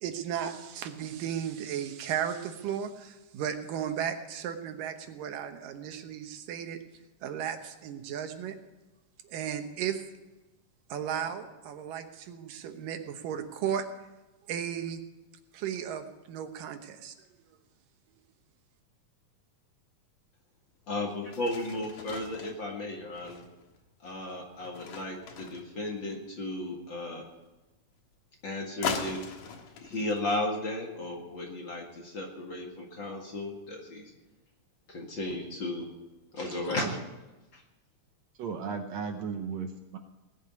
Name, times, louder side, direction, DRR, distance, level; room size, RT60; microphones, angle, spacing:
voice 1, 0.0-6.8 7.2-8.6 9.2-10.0 10.9-13.8 14.5-15.0 15.5-17.1, right 9 dB, 90° right, 7 dB, 2.8 m, -35 dB
sound 1, 20.9-21.0 21.3-26.2 28.8-30.2, left 6 dB, 75° left, 2.9 m, -39 dB
voice 2, 20.9-23.4 24.0-27.2 28.4-29.2 29.8-34.1 34.9-35.9 36.3-37.1 37.5-37.6, left 2 dB, 40° left, 0 dB, 2.3 m, -35 dB
voice 3, 38.4-40.0, right 6 dB, 70° right, 6 dB, 1.8 m, -35 dB
19.5 x 6.7 x 9.7 m, 1.1 s
omnidirectional pair, 3.7 m